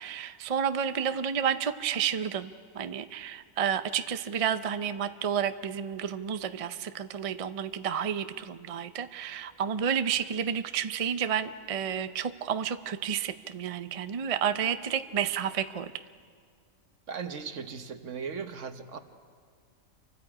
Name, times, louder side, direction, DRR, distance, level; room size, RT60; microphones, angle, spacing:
voice 1, 0.0-15.9, right 8 dB, 45° right, 11 dB, 0.4 m, -31 dB
voice 2, 17.1-19.0, right 6 dB, 65° right, 8 dB, 1.4 m, -37 dB
28.0 x 24.0 x 4.9 m, 2.1 s
omnidirectional pair, 1.4 m